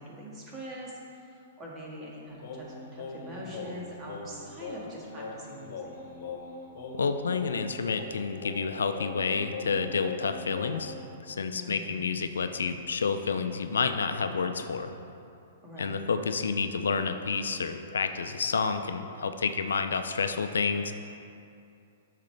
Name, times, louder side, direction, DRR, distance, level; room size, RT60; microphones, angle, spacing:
voice 1, 0.0-6.0 11.5-12.0 15.6-16.0, equal, 25° right, -4 dB, 1.9 m, -43 dB
Singing, 2.4-11.0, left 4 dB, 60° left, 1.2 m, -41 dB
voice 2, 7.0-10.9 11.2-14.9 15.8-20.9, left 5 dB, 90° left, 8 dB, 0.5 m, -29 dB
10.5 x 6.6 x 3.3 m, 2.6 s
hypercardioid pair, 130°, 0 cm